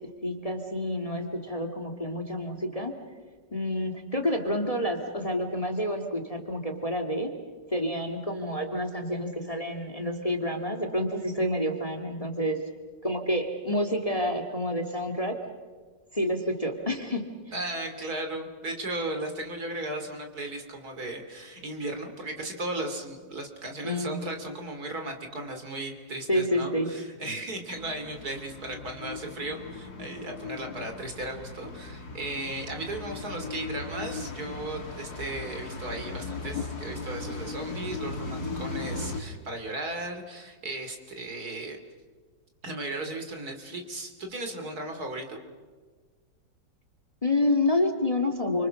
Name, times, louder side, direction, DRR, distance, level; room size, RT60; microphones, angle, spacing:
voice 1, 0.2-2.9 3.5-7.3 7.7-12.6 13.0-15.4 16.1-17.2 23.8-24.2 26.3-26.9 47.2-48.7, left 1 dB, 20° left, 5 dB, 2.2 m, -28 dB
voice 2, 17.5-41.8 42.6-45.4, right 2 dB, 55° right, 5 dB, 3.5 m, -36 dB
sound 1, 27.7-39.2, left 3 dB, 55° left, 2.7 m, -37 dB
29.0 x 25.5 x 6.4 m, 1.4 s
omnidirectional pair, 1.9 m